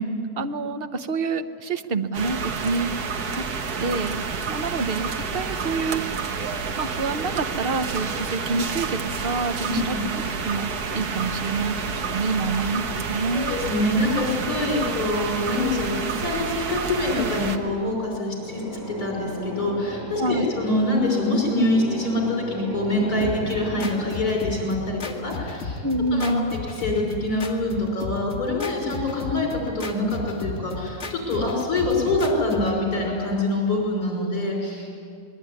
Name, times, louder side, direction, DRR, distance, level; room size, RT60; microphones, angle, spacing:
voice 1, 0.4-2.9 3.3-3.4 3.8-6.0 6.8-10.7 10.9-13.5 20.2-20.4 25.8-26.5, right 3 dB, 40° right, 9 dB, 1.0 m, -27 dB
sound 1, 2.1-17.6, right 5 dB, 65° right, 1.7 m, -29 dB
voice 2, 9.6-10.0 12.4-12.5 13.3-25.8 26.1-26.3 26.8-35.0, left 2 dB, 60° left, -1 dB, 6.3 m, -25 dB
sound 2, 18.3-26.0, left 1 dB, 10° right, 5.7 m, -36 dB
sound 3, 23.2-32.8, left 3 dB, 40° left, 2.3 m, -34 dB
26.5 x 21.0 x 9.7 m, 2.3 s
omnidirectional pair, 1.8 m